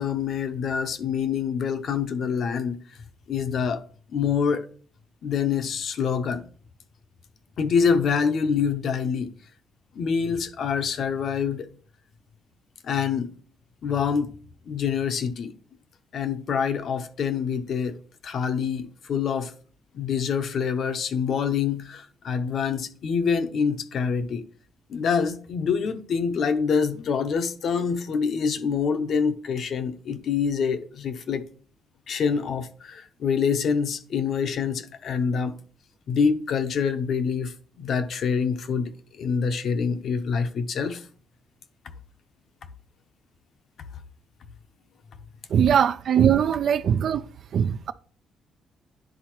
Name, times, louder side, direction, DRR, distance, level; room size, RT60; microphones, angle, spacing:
voice 1, 0.0-2.8 3.3-3.8 4.1-4.6 5.2-6.4 7.6-9.3 10.0-11.7 12.8-13.3 13.8-14.3 14.7-15.5 16.1-18.0 18.2-19.5 19.9-24.4 24.9-31.5 32.1-35.5 36.1-37.5 37.8-38.9 39.2-41.0, left 6 dB, 60° left, 0.7 m, -26 dB
voice 2, 45.5-47.2 47.5-47.9, right 8 dB, 65° right, 0.4 m, -21 dB
10.0 x 3.7 x 3.0 m
cardioid pair, 90°, 0 cm